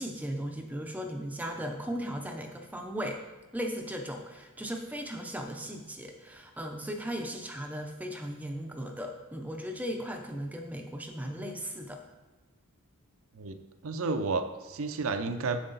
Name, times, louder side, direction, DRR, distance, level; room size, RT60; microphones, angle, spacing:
voice 1, 0.0-3.2 3.5-12.0, equal, 5° right, 3 dB, 0.5 m, -37 dB
voice 2, 13.8-15.7, right 3 dB, 65° right, 8 dB, 0.5 m, -31 dB
7.7 x 6.5 x 3.9 m, 1.3 s
head